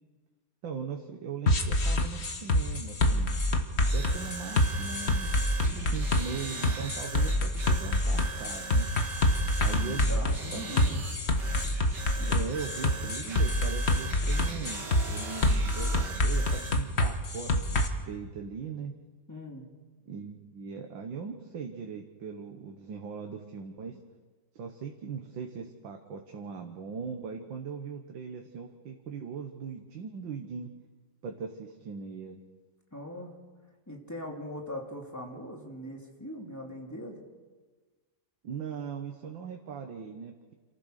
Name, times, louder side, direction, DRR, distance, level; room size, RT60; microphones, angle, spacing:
voice 1, 0.6-3.4 3.9-5.3 5.9-8.9 9.6-10.2 10.5-11.0 12.2-19.0 20.1-24.0 24.5-30.7 31.2-32.4 38.4-40.5, right 6 dB, 85° right, 4 dB, 2.0 m, -39 dB
sound 1, 1.5-17.9, left 1 dB, 35° left, 1.6 m, -26 dB
sound 2, 3.7-16.8, right 4 dB, 65° right, 2.6 m, -40 dB
voice 2, 9.7-11.0 12.2-12.4 19.3-19.7 32.9-33.3 33.9-37.2, equal, 10° left, 0 dB, 2.8 m, -40 dB
28.0 x 15.0 x 6.5 m, 1.3 s
omnidirectional pair, 2.0 m